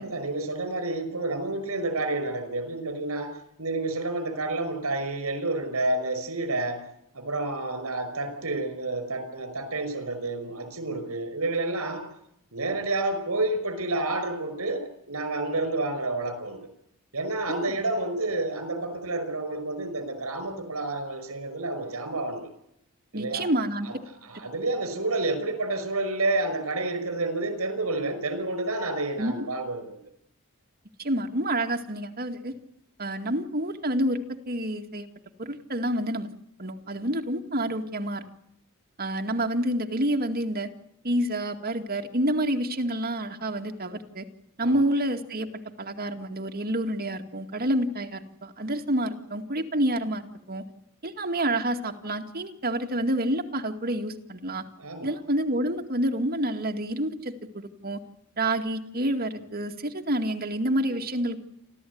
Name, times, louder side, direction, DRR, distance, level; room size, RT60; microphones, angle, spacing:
voice 1, 0.0-3.3 3.6-6.8 7.1-12.0 12.5-16.7 17.1-22.5 23.1-23.5 23.8-23.9 24.2-30.0 44.6-44.8 54.8-55.1, right 2 dB, 80° right, 10 dB, 5.4 m, -29 dB
voice 2, 17.5-17.8 23.1-23.9 29.2-29.3 31.0-32.5 33.0-34.2 34.5-35.1 35.4-36.3 36.6-38.2 39.0-40.7 41.0-44.3 44.6-45.5 45.8-50.2 50.5-50.6 51.0-54.6 55.0-58.0 58.4-61.4, right 1 dB, 45° right, 4 dB, 2.2 m, -28 dB
29.0 x 13.5 x 9.5 m, 0.78 s
head